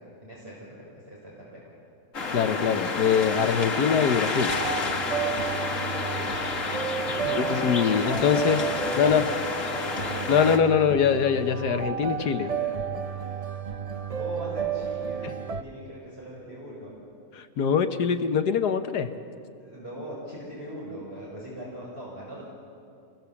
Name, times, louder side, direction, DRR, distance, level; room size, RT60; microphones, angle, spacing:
voice 1, 0.2-1.9 7.1-10.5 12.0-13.9 14.1-17.0 19.6-22.4, equal, 35° right, -5 dB, 5.0 m, -41 dB
sound 1, 2.1-10.6, left 3 dB, 55° left, 1.9 m, -30 dB
voice 2, 2.3-4.5 7.3-8.6 9.0-9.3 10.3-12.5 17.4-19.1, left 7 dB, 80° left, 8 dB, 1.5 m, -23 dB
sound 2, 4.5-15.6, right 7 dB, 75° right, 0.3 m, -32 dB
28.0 x 21.0 x 7.1 m, 2.4 s
omnidirectional pair, 1.7 m